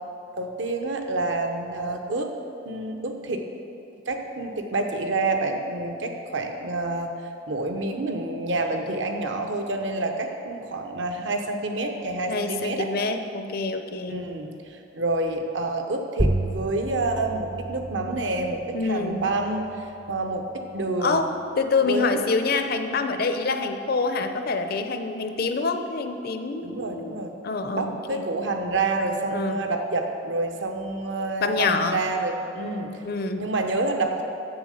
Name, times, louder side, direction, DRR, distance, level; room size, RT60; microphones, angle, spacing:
voice 1, 0.4-2.3 2.6-3.5 4.1-7.1 7.5-12.9 14.1-19.7 20.1-21.2 21.8-22.2 26.6-27.3 27.7-32.9 33.4-34.2, right 2 dB, 65° right, 4 dB, 0.9 m, -28 dB
voice 2, 12.3-14.2 18.7-19.2 21.0-27.1 27.4-28.2 29.3-29.6 31.4-32.0 33.0-33.5, left 4 dB, 50° left, 7 dB, 0.6 m, -26 dB
sound 1, 16.2-21.3, right 1 dB, 10° right, 0.5 m, -32 dB
7.5 x 7.1 x 6.5 m, 2.8 s
head